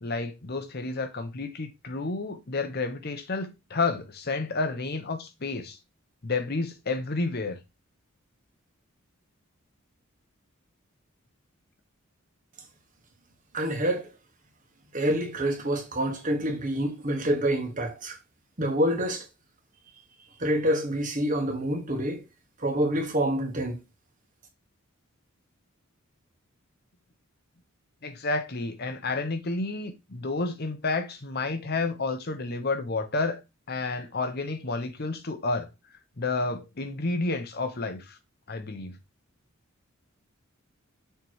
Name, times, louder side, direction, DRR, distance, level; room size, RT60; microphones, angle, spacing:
voice 1, 0.0-5.8 6.2-7.6 28.0-33.4 33.7-35.7 36.2-38.2 38.5-39.0, left 3 dB, 50° left, 0.9 m, -30 dB
voice 2, 13.5-14.1 14.9-18.2 18.6-19.3 20.4-22.2 22.6-23.8, right 1 dB, 40° right, 1.4 m, -27 dB
6.6 x 3.3 x 4.6 m
head